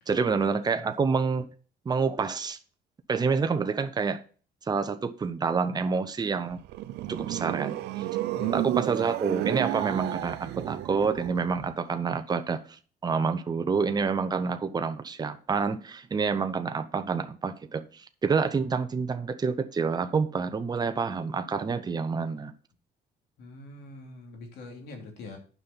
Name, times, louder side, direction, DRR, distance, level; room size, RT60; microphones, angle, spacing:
voice 1, 0.1-1.5 1.8-2.6 3.1-4.2 4.7-6.6 7.1-7.8 8.5-22.5, right 5 dB, 25° right, 0.8 m, -28 dB
sound 1, 6.4-11.7, right 14 dB, 80° right, 0.6 m, -32 dB
voice 2, 23.4-25.4, left 2 dB, 70° left, 3.1 m, -43 dB
9.5 x 5.7 x 5.3 m
cardioid pair, 110°, 17 cm